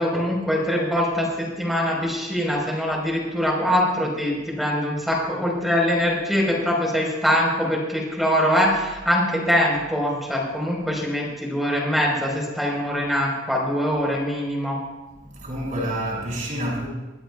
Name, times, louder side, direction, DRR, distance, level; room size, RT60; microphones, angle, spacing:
voice 1, 0.0-14.8, equal, ahead, -2 dB, 4.6 m, -23 dB
voice 2, 15.1-16.9, right 1 dB, 40° right, -4 dB, 6.1 m, -28 dB
23.0 x 17.0 x 2.4 m, 1.1 s
head